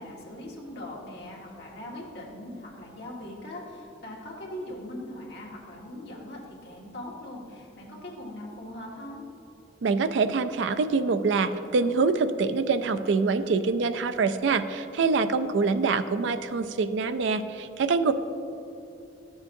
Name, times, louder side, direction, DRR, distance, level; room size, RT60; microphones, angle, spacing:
voice 1, 0.0-9.3, left 1 dB, 60° left, -3 dB, 1.6 m, -40 dB
voice 2, 9.8-18.1, right 4 dB, 70° right, 10 dB, 0.4 m, -25 dB
13.0 x 7.1 x 2.6 m, 2.8 s
head